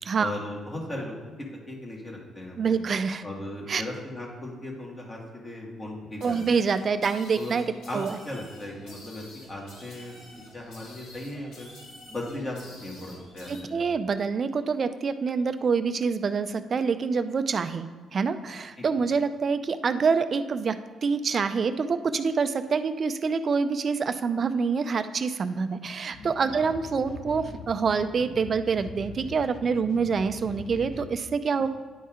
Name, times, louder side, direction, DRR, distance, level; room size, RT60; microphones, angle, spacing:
voice 1, 0.2-2.8 3.2-6.5 7.3-7.6 7.9-8.0 8.3-11.7 12.1-13.8 18.8-18.9 26.5-26.7, left 1 dB, 30° left, -2 dB, 2.0 m, -37 dB
voice 2, 2.6-3.2 3.7-3.8 6.2-7.7 7.9-8.2 13.5-31.7, right 5 dB, 45° right, 10 dB, 0.4 m, -26 dB
sound 1, 6.2-13.6, left 1 dB, 85° left, 2.0 m, -49 dB
sound 2, 26.1-31.1, left 3 dB, 50° left, 0.8 m, -43 dB
10.0 x 4.2 x 3.7 m, 1.5 s
cardioid pair, 90°, 0 cm